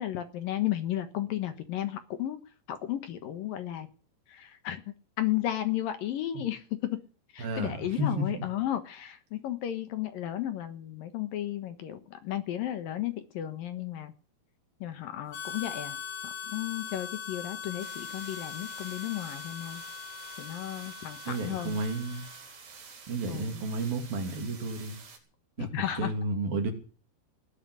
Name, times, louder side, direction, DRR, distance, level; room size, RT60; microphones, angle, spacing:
voice 1, 0.0-2.4 2.7-3.9 4.3-4.8 5.2-7.0 7.3-14.1 14.8-16.0 16.5-19.8 20.4-21.8 23.3-23.6 25.6-26.1, left 12 dB, 65° left, 10 dB, 2.7 m, -33 dB
voice 2, 7.4-8.4 21.3-22.3 23.1-25.0 25.6-25.7 26.0-26.7, right 2 dB, 60° right, 4 dB, 4.5 m, -32 dB
Harmonica, 15.3-22.6, left 7 dB, 90° left, 4.3 m, -41 dB
sound 1, 17.8-25.2, right 5 dB, 80° right, 6.2 m, -49 dB
19.5 x 7.4 x 9.4 m, 0.38 s
omnidirectional pair, 4.7 m